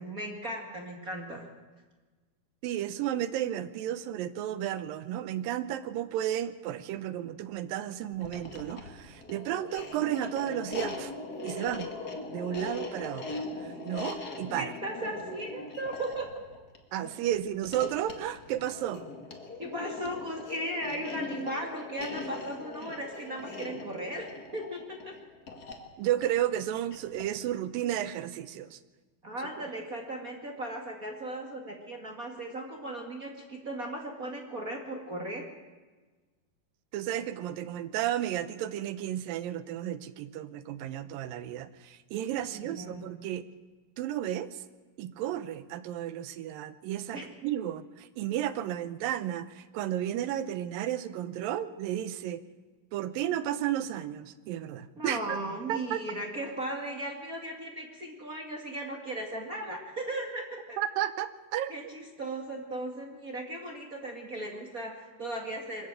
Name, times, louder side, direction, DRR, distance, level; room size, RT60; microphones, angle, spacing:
voice 1, 0.0-1.5 14.6-16.3 19.6-25.1 29.2-35.4 42.4-43.0 47.1-47.3 54.9-60.8 61.7-65.9, right 1 dB, 35° right, 2 dB, 1.5 m, -37 dB
voice 2, 2.6-11.1 11.4-11.9 12.3-14.7 16.9-19.0 26.0-28.8 36.9-43.4 44.0-44.6 45.0-52.4 52.9-55.4 55.7-56.0 60.8-61.7, right 11 dB, 75° right, 13 dB, 2.3 m, -33 dB
sound 1, 8.1-27.4, left 2 dB, 40° left, 1.5 m, -40 dB
22.5 x 14.0 x 8.9 m, 1.3 s
omnidirectional pair, 4.5 m